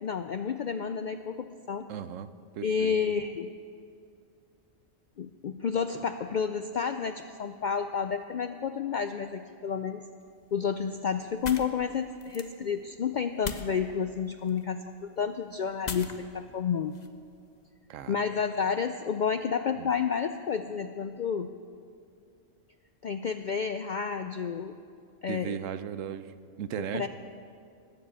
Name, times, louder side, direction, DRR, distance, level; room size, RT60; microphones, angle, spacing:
voice 1, 0.0-1.9 2.6-3.5 5.2-10.0 10.5-17.0 18.1-21.5 23.0-24.8 25.2-25.6 26.9-27.1, left 6 dB, 70° left, 9 dB, 0.4 m, -30 dB
voice 2, 1.9-2.9 17.9-18.4 19.8-19.9 25.3-27.1, right 9 dB, 80° right, 13 dB, 1.1 m, -37 dB
sound 1, 10.2-17.7, left 4 dB, 40° left, 0.8 m, -44 dB
19.0 x 7.5 x 8.3 m, 2.4 s
omnidirectional pair, 1.3 m